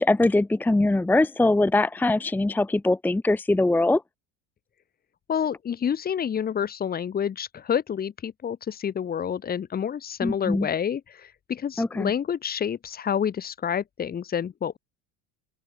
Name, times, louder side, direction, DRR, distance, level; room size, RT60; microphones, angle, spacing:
voice 1, 0.0-4.0 10.2-10.7 11.8-12.1, left 2 dB, 5° left, 1.0 m, -22 dB
voice 2, 5.3-14.8, left 8 dB, 25° left, 1.8 m, -28 dB
open air
cardioid pair, 150°, 39 cm